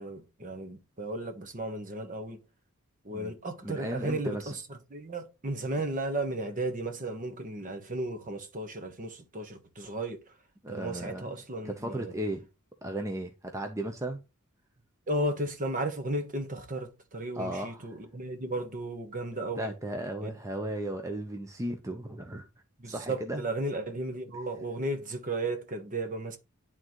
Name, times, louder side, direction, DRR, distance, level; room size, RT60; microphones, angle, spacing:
voice 1, 0.0-2.4 3.0-4.4 4.9-10.2 10.7-12.1 15.1-19.7 22.8-26.4, right 1 dB, 35° right, 1.1 m, -34 dB
voice 2, 3.6-4.5 10.6-11.3 11.6-12.5 12.8-14.2 17.3-18.0 19.6-22.5 22.8-23.4, right 1 dB, 15° right, 0.7 m, -35 dB
11.0 x 3.8 x 3.1 m
head